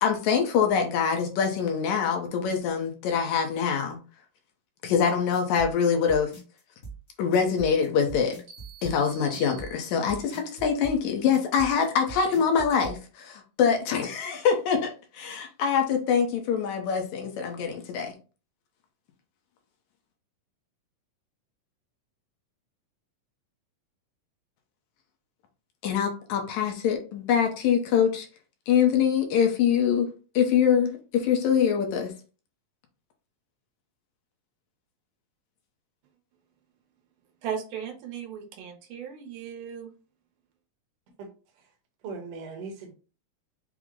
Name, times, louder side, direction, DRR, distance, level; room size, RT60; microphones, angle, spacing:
voice 1, 0.0-4.0 4.8-6.3 7.2-8.4 8.8-18.1 25.8-28.3 28.7-30.1 30.4-32.1, left 7 dB, 70° left, 1.9 m, -24 dB
sound 1, 5.1-13.0, right 4 dB, 55° left, 0.7 m, -41 dB
sound 2, 8.5-10.3, right 11 dB, 40° right, 0.9 m, -49 dB
voice 2, 37.4-39.9, right 8 dB, 80° right, 2.4 m, -36 dB
voice 3, 42.0-42.9, right 4 dB, 60° right, 1.6 m, -39 dB
6.0 x 2.1 x 3.6 m
omnidirectional pair, 3.8 m